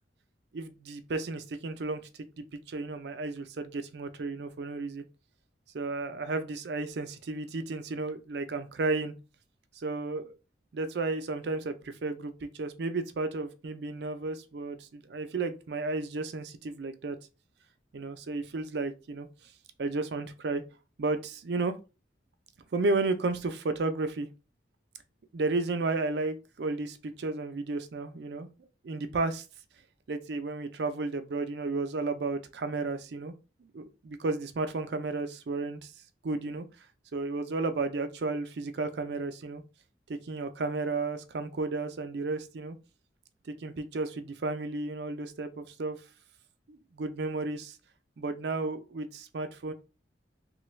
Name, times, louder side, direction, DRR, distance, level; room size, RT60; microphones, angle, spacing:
voice 1, 0.5-2.1 2.4-5.0 5.7-9.1 9.8-10.4 10.7-17.2 17.9-19.3 19.8-20.6 21.0-21.8 22.7-24.3 25.3-29.4 30.1-33.3 33.7-35.9 36.2-36.6 37.1-39.6 40.1-42.8 43.5-46.0 46.7-47.8 48.2-49.7, right 3 dB, 65° right, 0.4 m, -33 dB
3.2 x 2.3 x 3.1 m
head